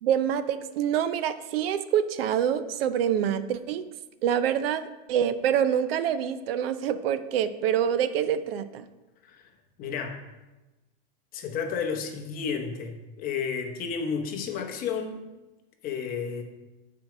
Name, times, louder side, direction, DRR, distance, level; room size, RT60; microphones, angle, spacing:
voice 1, 0.0-3.9 4.2-8.9, right 9 dB, 80° right, 12 dB, 0.6 m, -26 dB
voice 2, 9.8-10.2 11.3-15.2 15.8-16.4, left 6 dB, 30° left, 4 dB, 0.9 m, -32 dB
7.5 x 4.6 x 6.1 m, 1.1 s
supercardioid pair, 155°, 29 cm